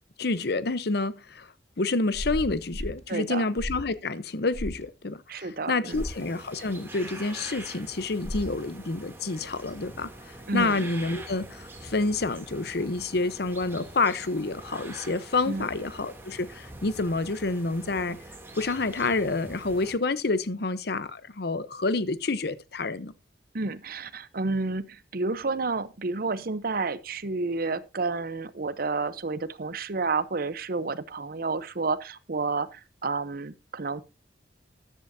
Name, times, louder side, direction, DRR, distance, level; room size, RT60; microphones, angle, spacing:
voice 1, 0.2-18.2 18.6-23.1, left 3 dB, 65° left, 0.8 m, -28 dB
sound 1, 2.1-3.0 3.6-4.0 4.5-4.8 5.9-6.2 8.2-8.6, equal, 40° left, 1.1 m, -34 dB
voice 2, 3.1-3.4 5.3-6.0 10.5-10.9 15.5-15.7 23.5-34.0, right 3 dB, 55° right, 0.8 m, -30 dB
sound 2, 5.9-20.0, right 2 dB, 15° right, 2.7 m, -44 dB
13.5 x 11.0 x 2.7 m
head